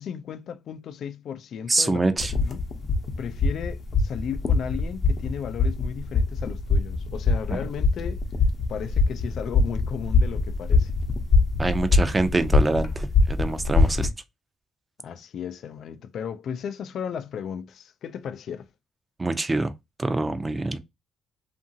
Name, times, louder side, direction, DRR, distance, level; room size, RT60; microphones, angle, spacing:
voice 1, 0.0-2.0 2.4-2.7 3.2-8.2 8.7-10.9 15.0-18.7, left 7 dB, 70° left, 0.3 m, -35 dB
voice 2, 1.7-2.3 7.5-7.6 11.6-14.1 19.2-19.7 20.0-20.8, right 2 dB, 20° right, 0.5 m, -25 dB
sound 1, 2.2-14.1, left 3 dB, 50° left, 0.7 m, -23 dB
2.7 x 2.5 x 2.6 m
cardioid pair, 90°, 0 cm